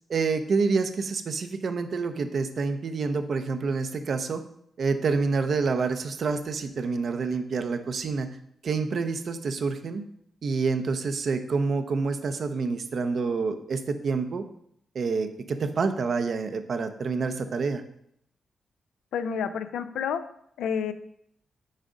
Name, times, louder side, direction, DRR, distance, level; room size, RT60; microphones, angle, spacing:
voice 1, 0.1-4.4 4.8-8.4 8.6-10.0 10.4-14.5 14.9-17.8, right 4 dB, 60° right, 8 dB, 0.7 m, -27 dB
voice 2, 19.1-20.2 20.6-20.9, left 7 dB, 90° left, 10 dB, 0.4 m, -29 dB
6.4 x 5.0 x 3.8 m, 0.70 s
cardioid pair, 65°, 0 cm